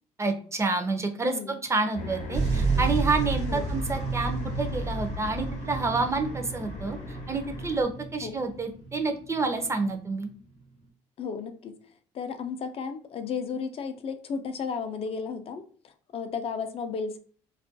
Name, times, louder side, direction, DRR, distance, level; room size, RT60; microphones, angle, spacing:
voice 1, 0.2-10.3, right 3 dB, 20° right, 5 dB, 0.4 m, -29 dB
voice 2, 1.2-1.6 3.5-3.7 8.2-8.4 9.9-10.0 11.2-11.7 12.1-17.2, left 5 dB, 50° left, 9 dB, 0.4 m, -34 dB
sound 1, 1.9-7.8, left 3 dB, 75° left, 0.7 m, -38 dB
sound 2, 2.3-9.8 10.5-10.6, right 4 dB, 60° right, 0.7 m, -31 dB
2.3 x 2.1 x 2.6 m, 0.43 s
cardioid pair, 95°, 13 cm